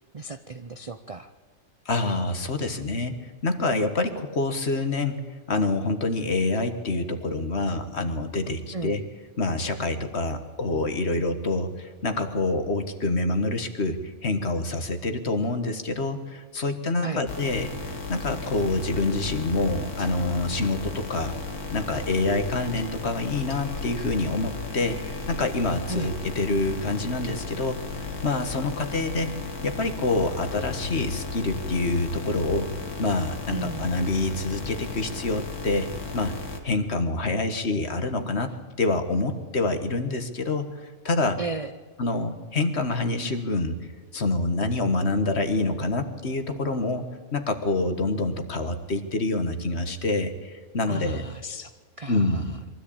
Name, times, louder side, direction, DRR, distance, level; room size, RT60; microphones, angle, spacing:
voice 1, 0.1-1.3 8.7-9.0 17.0-17.2 25.9-26.1 33.5-33.9 41.4-41.7 50.8-51.7 52.0-52.6, right 3 dB, 45° right, 9 dB, 0.4 m, -34 dB
voice 2, 1.8-3.2 3.4-5.2 5.5-9.0 9.4-21.3 21.7-25.0 25.3-29.3 29.6-32.7 33.0-35.9 36.1-36.3 36.6-40.7 41.0-41.4 42.0-43.7 44.1-51.2 52.1-52.5, left 2 dB, 45° left, 8 dB, 1.7 m, -26 dB
sound 1, 17.3-36.6, left 3 dB, 85° left, 2.5 m, -34 dB
23.0 x 13.5 x 8.6 m, 1.4 s
omnidirectional pair, 1.5 m